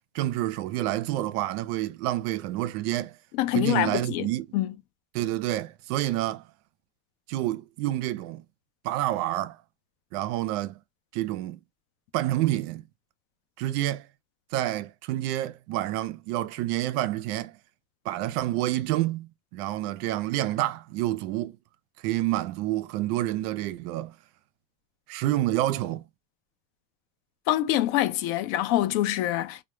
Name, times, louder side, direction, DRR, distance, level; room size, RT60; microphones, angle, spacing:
voice 1, 0.1-3.1 3.5-4.5 5.1-6.4 7.3-8.4 8.8-9.6 10.1-10.8 11.1-11.6 12.1-12.8 13.6-14.1 14.5-17.5 18.1-21.6 22.0-24.1 25.1-26.0, right 14 dB, 75° right, 0.5 m, -28 dB
voice 2, 3.4-4.3 4.5-4.7 27.5-29.6, left 14 dB, 65° left, 0.5 m, -25 dB
2.2 x 2.1 x 3.0 m
cardioid pair, 150°, 46 cm